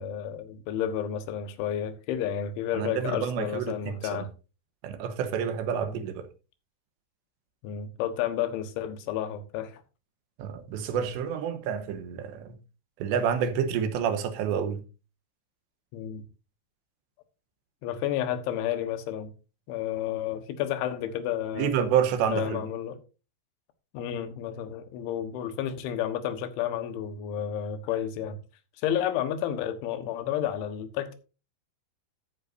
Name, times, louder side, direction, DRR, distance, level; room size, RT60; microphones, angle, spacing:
voice 1, 0.0-4.3 5.9-6.1 7.6-9.8 15.9-16.2 17.8-19.3 19.7-21.7 22.3-23.0 23.9-28.4 28.8-31.2, left 10 dB, 75° left, 3.5 m, -31 dB
voice 2, 2.7-4.3 4.8-6.3 10.4-12.5 13.0-14.8 21.6-22.6, right 8 dB, 70° right, 3.1 m, -28 dB
14.5 x 8.9 x 2.6 m
omnidirectional pair, 5.6 m